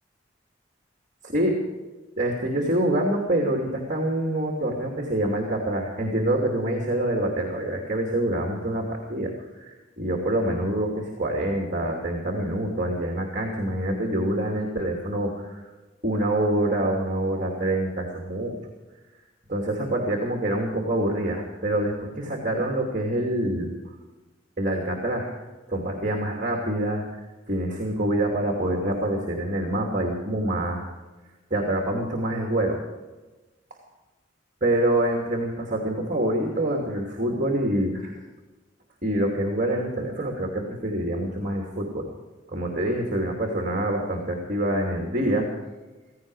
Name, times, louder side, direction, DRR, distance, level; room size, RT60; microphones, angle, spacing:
voice 1, 2.2-15.6 16.0-18.6 19.5-23.7 24.6-25.3 25.7-27.0 27.5-30.8 31.5-32.8 34.6-38.2 39.0-42.1 42.5-45.5, right 1 dB, 40° right, 0 dB, 2.8 m, -26 dB
16.5 x 16.5 x 4.8 m, 1.2 s
head